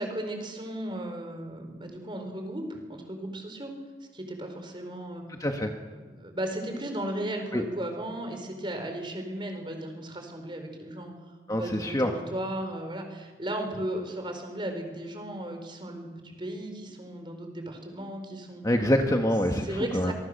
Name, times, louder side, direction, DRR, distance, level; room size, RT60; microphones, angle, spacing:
voice 1, 0.0-3.8 4.1-5.2 5.9-11.1 11.5-18.6 19.6-20.1, right 1 dB, 25° right, 5 dB, 4.4 m, -35 dB
voice 2, 5.4-5.7 7.5-7.6 11.5-12.1 18.6-19.7 19.9-20.1, equal, 20° left, 4 dB, 1.4 m, -25 dB
26.0 x 22.5 x 6.7 m, 1.4 s
head